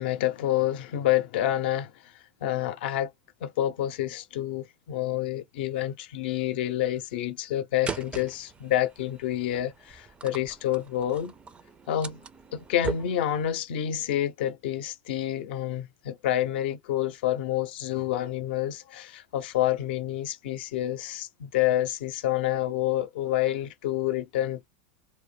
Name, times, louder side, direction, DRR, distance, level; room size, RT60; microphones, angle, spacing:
voice 1, 0.0-1.9 2.4-3.1 3.4-11.3 11.9-12.2 12.5-24.7, left 12 dB, 75° left, 0.5 m, -28 dB
sound 1, 7.9-13.6, right 5 dB, 20° right, 0.3 m, -40 dB
2.2 x 2.1 x 3.2 m
supercardioid pair, 115°, 6 cm